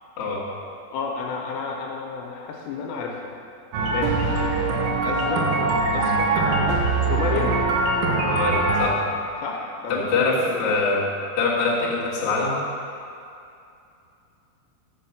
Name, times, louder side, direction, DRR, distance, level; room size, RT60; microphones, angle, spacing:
voice 1, 0.6-3.3 3.9-4.2 5.0-5.5 5.9-6.6 7.0-7.6 9.4-10.1 10.4-10.7, left 5 dB, 80° left, 1 dB, 2.8 m, -31 dB
sound 1, 3.7-8.9, right 3 dB, 80° right, 2.1 m, -22 dB
voice 2, 8.2-8.9 9.9-12.6, left 3 dB, 65° left, -6 dB, 1.5 m, -24 dB
6.5 x 6.3 x 7.1 m, 2.6 s
omnidirectional pair, 5.2 m